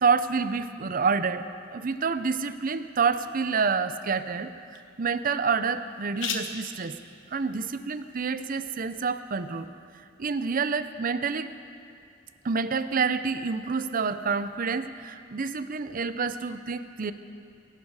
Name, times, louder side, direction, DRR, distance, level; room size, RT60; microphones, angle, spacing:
voice 1, 0.0-7.0 7.3-9.7 10.2-11.5 12.4-17.1, right 5 dB, 50° right, 12 dB, 0.6 m, -28 dB
sound 1, 2.2-9.7, left 6 dB, 80° left, 1.1 m, -43 dB
20.5 x 11.5 x 4.8 m, 2.4 s
head